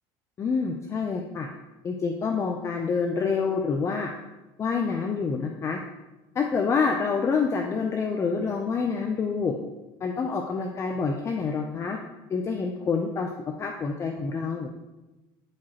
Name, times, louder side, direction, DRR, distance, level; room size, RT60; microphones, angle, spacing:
voice 1, 0.4-1.5 1.8-4.1 4.6-5.8 6.3-9.5 10.0-12.0 12.3-13.3 13.6-14.7, left 5 dB, 25° left, 3 dB, 0.5 m, -27 dB
11.5 x 4.8 x 2.9 m, 1.1 s
cardioid pair, 145°, 11 cm